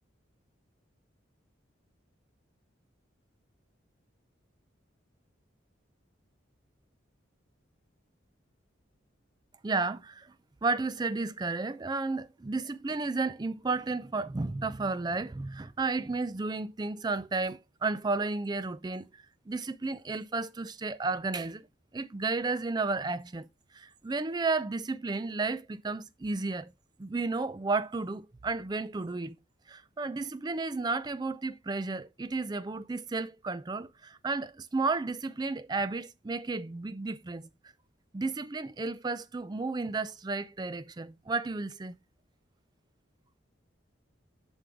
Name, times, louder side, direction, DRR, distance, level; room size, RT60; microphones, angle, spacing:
voice 1, 9.6-10.3 10.6-19.1 19.5-21.7 21.9-23.5 23.7-26.7 27.0-29.4 29.7-37.5 38.1-42.0, right 3 dB, 20° right, 0.4 m, -32 dB
7.7 x 6.2 x 3.3 m
head